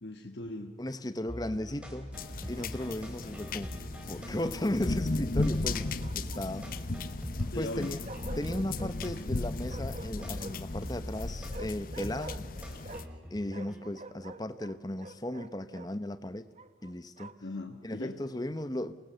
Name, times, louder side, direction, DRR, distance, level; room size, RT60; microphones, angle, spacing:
voice 1, 0.0-0.8 7.5-8.0 17.4-18.2, left 1 dB, 70° left, 2 dB, 1.6 m, -39 dB
voice 2, 0.8-2.1 2.5-3.8 4.1-6.7 7.6-8.0 8.4-12.5 13.3-16.5 16.8-17.3 17.8-19.0, left 1 dB, 20° left, 11 dB, 1.0 m, -36 dB
sound 1, 1.3-13.8, equal, 5° right, 3.6 m, -43 dB
sound 2, 2.1-13.0, left 2 dB, 50° left, 0.8 m, -36 dB
Bark, 2.5-3.2 5.6-6.7 8.1-9.0 9.6-10.7 11.5-13.2 13.5-15.9 16.6-17.5, right 2 dB, 40° right, 0.8 m, -48 dB
27.5 x 19.5 x 6.9 m, 1.4 s
head